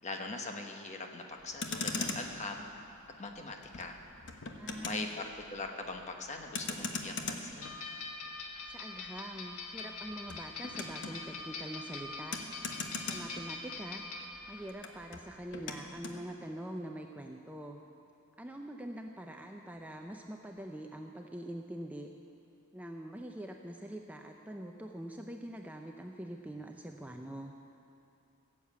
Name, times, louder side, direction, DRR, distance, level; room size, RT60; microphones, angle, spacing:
voice 1, 0.0-2.7 3.2-4.0 4.8-7.8, left 3 dB, 30° left, 3 dB, 1.1 m, -41 dB
Motor vehicle (road), 1.4-14.0 14.3-16.2, left 4 dB, 55° left, 1.0 m, -42 dB
voice 2, 4.5-5.2 8.7-12.4 13.0-14.0 14.5-17.8 18.4-22.1 22.7-27.5, right 1 dB, 5° right, 3 dB, 0.5 m, -44 dB
sound 1, 7.6-14.7, left 3 dB, 85° left, 1.4 m, -43 dB
16.0 x 7.4 x 8.3 m, 2.7 s
head